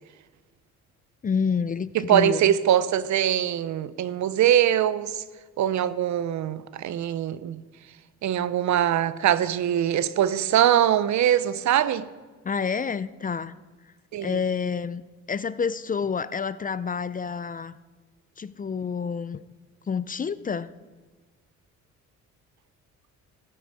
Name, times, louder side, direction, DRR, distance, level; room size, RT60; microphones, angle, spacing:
voice 1, 1.2-2.5 12.4-13.5 14.2-15.0 15.3-17.8 18.4-19.4 19.9-20.7, left 6 dB, 30° left, 0.5 m, -28 dB
voice 2, 1.9-5.2 5.6-7.6 8.2-12.1 14.1-14.3, right 11 dB, 70° right, 0.8 m, -22 dB
14.5 x 8.7 x 8.3 m
cardioid pair, 90°, 30 cm